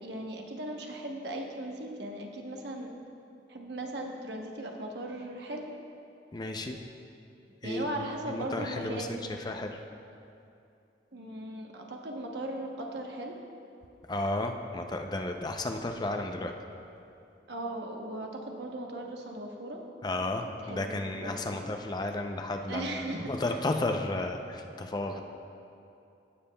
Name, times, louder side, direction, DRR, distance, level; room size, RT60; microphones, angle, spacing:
voice 1, 0.0-2.9 3.5-5.7 7.6-9.3 11.1-13.3 17.5-19.8 20.6-21.6 22.7-23.3 25.0-25.2, right 1 dB, 75° right, 1 dB, 1.0 m, -38 dB
voice 2, 6.3-6.8 7.6-9.2 9.4-9.8 14.1-16.5 20.0-25.2, left 2 dB, 25° left, 4 dB, 0.4 m, -33 dB
16.5 x 7.3 x 2.2 m, 2.7 s
head